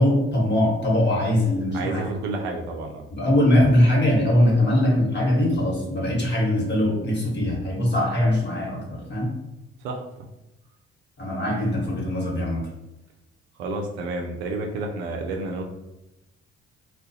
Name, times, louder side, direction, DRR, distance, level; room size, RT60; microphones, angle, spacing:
voice 1, 0.0-2.1 3.1-9.3 11.2-12.6, left 1 dB, 35° left, -3 dB, 1.2 m, -21 dB
voice 2, 1.7-3.0 9.8-10.0 13.6-15.6, right 2 dB, 85° right, 3 dB, 0.5 m, -30 dB
2.3 x 2.1 x 2.7 m, 0.96 s
hypercardioid pair, 45°, 31 cm